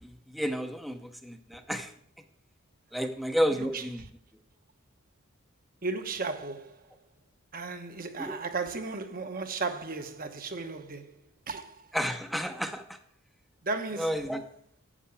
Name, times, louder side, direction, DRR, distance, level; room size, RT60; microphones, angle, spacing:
voice 1, 0.0-1.9 2.9-4.0 8.2-8.3 11.9-13.0 14.0-14.4, equal, ahead, 0.7 m, -31 dB
voice 2, 3.5-3.8 5.8-6.9 7.5-11.1 11.5-11.9 13.6-14.2, right 3 dB, 45° right, 1.0 m, -35 dB
10.0 x 8.3 x 6.9 m
head